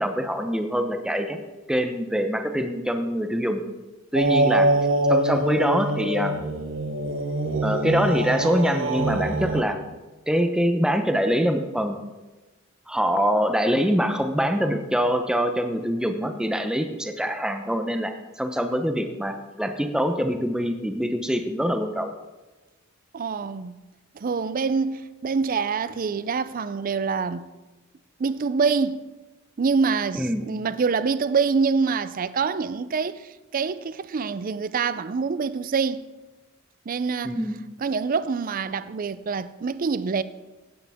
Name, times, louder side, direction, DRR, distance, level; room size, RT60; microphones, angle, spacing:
voice 1, 0.0-1.4 1.7-3.6 4.1-4.7 5.1-6.4 7.6-9.8 10.3-12.0 12.9-22.1 30.1-30.4 37.2-37.6, equal, 5° right, 0.8 m, -24 dB
sound 1, 4.1-9.6, right 1 dB, 65° right, 0.9 m, -24 dB
voice 2, 23.1-23.8 24.1-27.5 28.2-29.0 29.6-36.0 36.9-37.4 37.8-40.2, right 5 dB, 40° right, 0.4 m, -25 dB
16.0 x 8.6 x 3.6 m
head